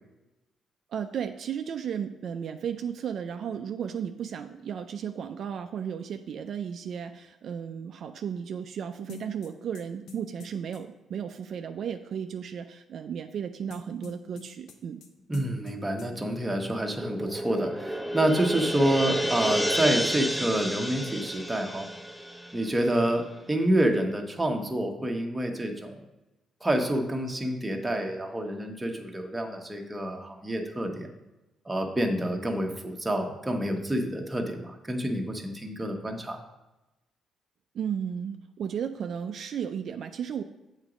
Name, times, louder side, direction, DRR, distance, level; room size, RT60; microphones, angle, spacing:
voice 1, 0.9-15.0 37.7-40.4, right 8 dB, 65° right, 7 dB, 0.3 m, -34 dB
sound 1, 9.1-10.8 13.7-15.1 15.3-15.7 16.0-16.1, left 6 dB, 80° left, 0.7 m, -44 dB
voice 2, 15.3-21.9 22.5-26.0 26.6-31.1 31.7-36.4, right 1 dB, 15° right, 2 dB, 1.0 m, -28 dB
sound 2, 16.9-23.4, equal, 10° left, 0.6 m, -31 dB
7.3 x 3.9 x 5.0 m, 1.0 s
cardioid pair, 90°, 0 cm